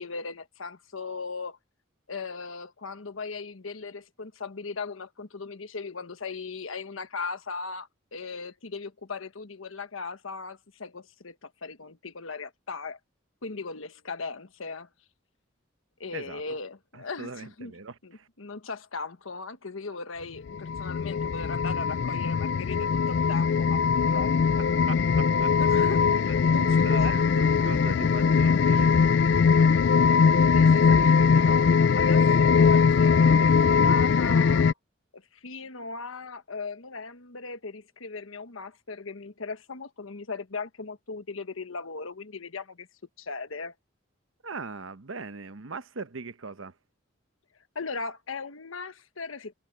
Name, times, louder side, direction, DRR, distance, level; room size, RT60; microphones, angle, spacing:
voice 1, 0.0-1.6 2.1-13.0 13.4-14.9 16.0-17.7 18.0-24.6 25.5-27.2 30.5-34.7 35.1-42.9 43.2-43.7 47.7-49.5, left 4 dB, 85° left, 1.3 m, -38 dB
voice 2, 16.9-18.3 24.9-25.5 26.6-28.9 30.4-30.6 31.0-31.1 32.5-32.6 44.4-46.7, right 4 dB, 80° right, 1.0 m, -40 dB
sound 1, 20.5-34.7, left 5 dB, 60° left, 0.3 m, -21 dB
head